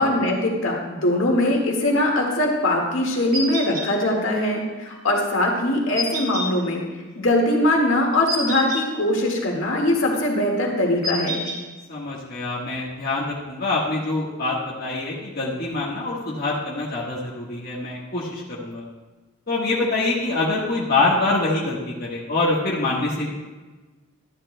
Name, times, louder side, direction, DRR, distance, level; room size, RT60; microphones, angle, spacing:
voice 1, 0.0-6.8 7.2-11.4, left 1 dB, 75° left, -1 dB, 1.8 m, -21 dB
sound 1, 3.3-3.9 5.9-6.5 8.3-8.8 11.0-11.6, equal, 50° right, 3.3 m, -27 dB
voice 2, 11.9-18.8 19.5-23.3, left 2 dB, 50° left, -6 dB, 1.4 m, -25 dB
13.0 x 10.5 x 2.2 m, 1.2 s
head